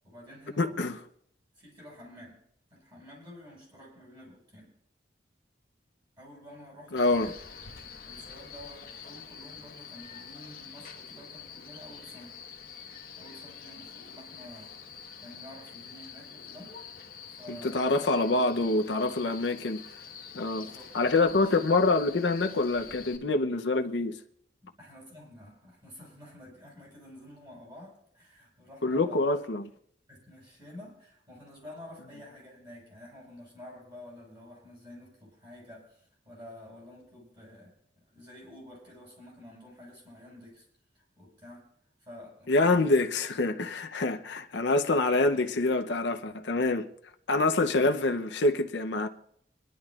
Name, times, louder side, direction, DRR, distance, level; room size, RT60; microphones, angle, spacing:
voice 1, 0.0-0.9 1.5-2.4 2.7-4.7 6.2-7.3 8.0-12.4 13.2-14.8 15.2-16.8 17.3-18.1 20.4-20.8 24.6-29.3 30.1-40.6 40.9-41.7 42.0-42.9 47.8-48.2, left 1 dB, 25° right, 6.6 m, -50 dB
voice 2, 0.6-1.0 6.9-7.3 17.5-19.8 20.3-20.7 20.9-24.2 28.8-29.7 42.5-46.9 47.3-49.1, left 2 dB, 80° left, 0.7 m, -26 dB
Male speech man speaking, 7.0-23.2, left 6 dB, 55° left, 1.3 m, -46 dB
27.5 x 11.0 x 2.4 m
head